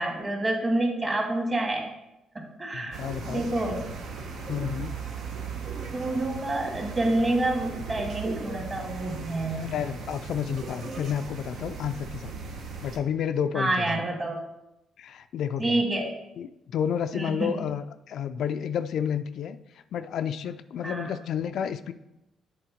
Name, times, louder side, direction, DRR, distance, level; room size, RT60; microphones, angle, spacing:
voice 1, 0.0-1.9 2.4-3.0 3.3-3.9 5.9-9.7 13.5-14.4 15.6-16.1 17.1-17.5 20.8-21.1, right 2 dB, 30° right, 1 dB, 1.8 m, -28 dB
voice 2, 2.7-3.5 4.5-5.0 9.5-12.3 12.8-14.0 15.0-15.8 16.4-19.6 19.9-21.9, left 8 dB, 70° left, 10 dB, 0.3 m, -31 dB
sound 1, 2.9-13.0, right 5 dB, 75° right, 0.9 m, -37 dB
7.7 x 3.6 x 5.1 m, 0.87 s
cardioid pair, 90°, 0 cm